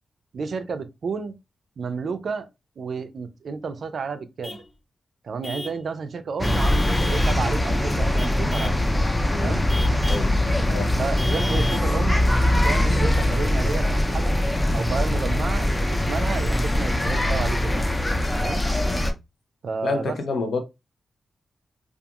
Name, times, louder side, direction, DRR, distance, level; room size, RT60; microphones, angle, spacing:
voice 1, 0.3-1.4 1.8-2.5 2.8-4.6 5.2-8.7 9.3-9.6 11.0-12.2 12.5-14.4 14.7-17.9 18.3-18.6 19.6-20.2, right 5 dB, 60° right, 0.4 m, -31 dB
Vehicle horn car horn honking / Truck, 4.4-4.7 5.4-5.8 6.4-7.4 8.2-8.8 9.7-10.3 11.2-11.9, left 2 dB, 35° left, 0.9 m, -35 dB
sound 1, 6.4-19.1, left 1 dB, 15° left, 0.3 m, -22 dB
voice 2, 19.8-20.6, left 3 dB, 80° left, 0.6 m, -28 dB
2.3 x 2.3 x 2.8 m
wide cardioid pair, 140°, 0 cm